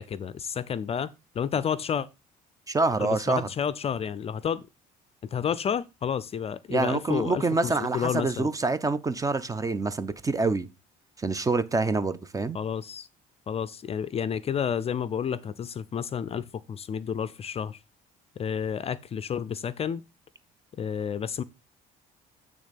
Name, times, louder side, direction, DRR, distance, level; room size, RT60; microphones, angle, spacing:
voice 1, 0.0-2.1 3.0-4.6 5.3-8.5 12.5-13.1 13.5-17.8 18.4-20.0 20.8-21.4, left 8 dB, 35° left, 0.4 m, -30 dB
voice 2, 2.7-3.5 6.7-10.7 11.2-12.6, right 3 dB, 20° right, 0.6 m, -26 dB
8.5 x 3.6 x 5.2 m
cardioid pair, 110°, 17 cm